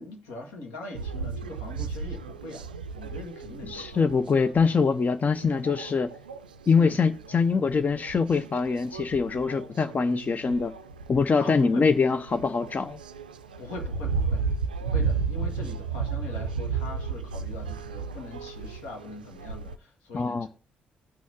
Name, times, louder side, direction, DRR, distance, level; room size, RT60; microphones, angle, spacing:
voice 1, 0.0-2.6 2.9-4.1 6.8-7.0 11.4-11.9 13.6-14.4 14.8-20.5, left 2 dB, 75° left, 1.8 m, -41 dB
sound 1, 0.9-19.8, right 5 dB, 90° right, 0.3 m, -34 dB
voice 2, 3.6-6.1 6.7-10.7 11.1-13.0 20.1-20.5, left 5 dB, 35° left, 0.5 m, -24 dB
16.5 x 6.2 x 2.8 m
figure-of-eight pair, 45°, 5 cm